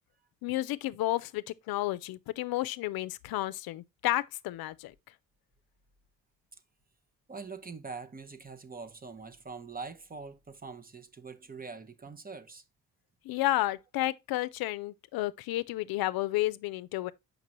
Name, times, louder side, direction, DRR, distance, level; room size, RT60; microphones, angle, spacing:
voice 1, 0.4-4.9 13.2-17.1, left 16 dB, 80° left, 0.5 m, -31 dB
voice 2, 7.3-12.6, right 4 dB, 25° right, 0.7 m, -43 dB
5.9 x 5.3 x 2.9 m
cardioid pair, 75°, 36 cm